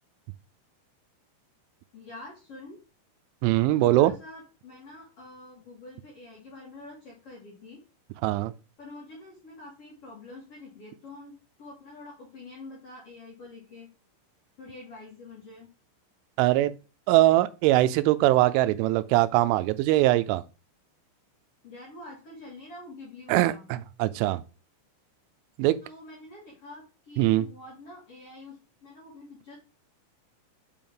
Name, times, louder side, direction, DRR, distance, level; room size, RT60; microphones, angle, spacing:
voice 1, 1.9-2.8 3.8-7.8 8.8-13.9 14.6-15.7 21.6-23.7 25.8-29.6, left 2 dB, 50° left, 1.9 m, -46 dB
voice 2, 3.4-4.1 8.2-8.5 16.4-16.7 17.1-20.4 23.3-24.4 25.6-25.8 27.2-27.5, right 16 dB, 90° right, 3.0 m, -22 dB
7.0 x 5.3 x 3.7 m
omnidirectional pair, 5.5 m